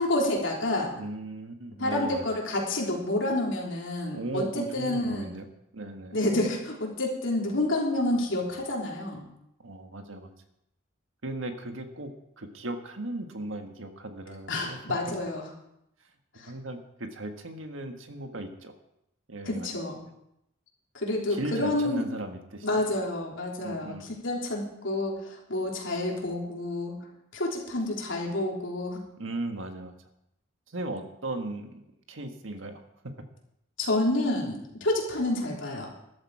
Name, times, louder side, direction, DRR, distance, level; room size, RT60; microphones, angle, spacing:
voice 1, 0.0-0.9 1.8-5.3 6.1-9.2 14.5-15.5 16.3-16.5 19.4-20.0 20.9-22.1 22.6-27.0 27.3-29.0 33.8-35.9, left 1 dB, 70° left, -2 dB, 3.5 m, -29 dB
voice 2, 1.0-2.2 4.1-5.4 5.7-6.1 9.6-10.3 11.2-14.8 16.4-18.7 19.3-19.7 21.3-22.8 23.6-24.0 29.2-29.9 30.7-31.8 32.1-32.8, right 1 dB, 80° right, 5 dB, 1.6 m, -37 dB
13.5 x 11.5 x 4.8 m, 0.81 s
head